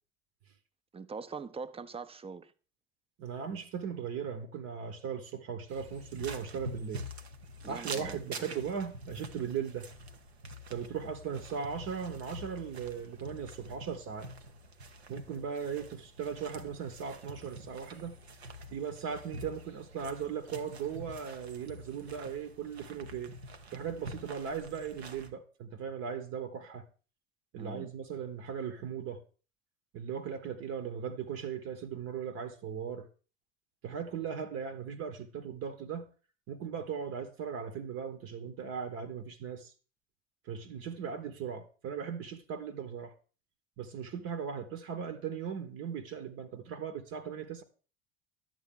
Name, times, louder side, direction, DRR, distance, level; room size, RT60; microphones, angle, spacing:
voice 1, 0.9-2.5 7.6-8.6 27.6-27.9, right 5 dB, 20° right, 0.5 m, -43 dB
voice 2, 3.2-7.1 7.7-9.9 10.7-14.3 15.1-18.2 18.7-23.3 23.7-26.8 27.5-29.2 29.9-33.1 33.8-36.1 36.5-39.7 40.4-43.1 43.8-47.6, right 7 dB, 50° right, 0.9 m, -38 dB
sound 1, 5.7-25.3, right 1 dB, 90° right, 0.7 m, -46 dB
11.0 x 7.5 x 3.6 m
figure-of-eight pair, 65°, 31 cm